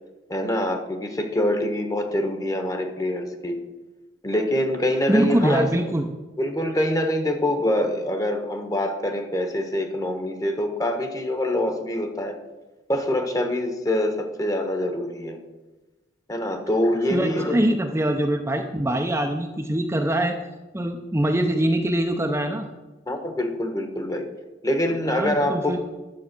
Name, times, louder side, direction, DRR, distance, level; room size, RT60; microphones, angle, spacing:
voice 1, 0.3-3.6 4.2-5.9 6.4-12.4 12.9-15.4 16.3-17.7 23.1-24.3 24.6-25.8, left 1 dB, 20° left, 6 dB, 1.2 m, -25 dB
voice 2, 5.1-6.1 17.1-20.4 20.7-22.7 25.1-25.8, right 1 dB, 15° right, 3 dB, 0.7 m, -23 dB
12.0 x 7.5 x 6.1 m, 1.2 s
head